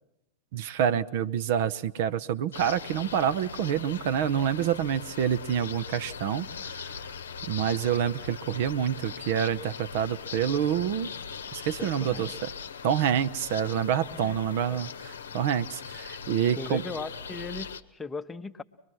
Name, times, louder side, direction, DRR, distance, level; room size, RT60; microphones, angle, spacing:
voice 1, 0.5-7.0 7.5-11.1 11.5-12.5 12.8-16.8, right 9 dB, 50° right, 12 dB, 0.7 m, -27 dB
sound 1, 2.5-17.8, left 6 dB, 65° left, 0.9 m, -40 dB
voice 2, 11.8-12.3 14.2-14.4 14.7-14.8 16.4-18.6, left 4 dB, 15° left, 10 dB, 0.9 m, -38 dB
24.0 x 21.5 x 6.2 m, 0.91 s
figure-of-eight pair, 90°, 0 cm